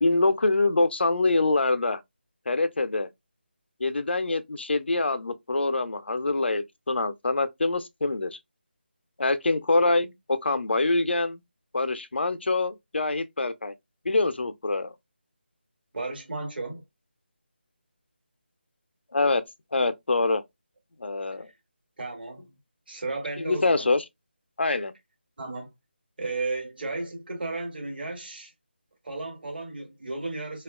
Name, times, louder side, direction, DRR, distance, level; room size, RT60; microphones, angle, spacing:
voice 1, 0.0-2.0 2.5-3.1 3.8-8.3 9.2-11.4 11.7-13.7 14.0-14.9 19.1-19.4 19.7-20.4 21.0-21.5 23.4-24.0 24.6-24.9, left 3 dB, 75° left, 0.4 m, -25 dB
voice 2, 15.9-16.8 22.0-22.5 22.9-23.9 25.4-25.7 26.2-28.5 29.0-30.6, right 3 dB, 60° right, 1.1 m, -34 dB
2.8 x 2.3 x 2.2 m
figure-of-eight pair, 160°, 6 cm